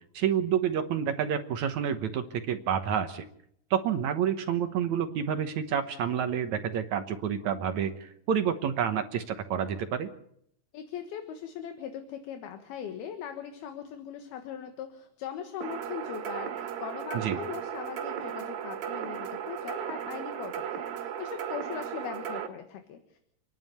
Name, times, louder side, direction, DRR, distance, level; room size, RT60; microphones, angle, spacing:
voice 1, 0.1-3.3 3.7-10.1 17.2-17.4, right 8 dB, 65° right, 8 dB, 1.9 m, -29 dB
voice 2, 10.7-23.2, left 8 dB, 75° left, 6 dB, 3.4 m, -40 dB
sound 1, 15.6-22.5, right 9 dB, 90° right, 4.0 m, -36 dB
29.0 x 11.0 x 9.1 m, 0.71 s
omnidirectional pair, 4.5 m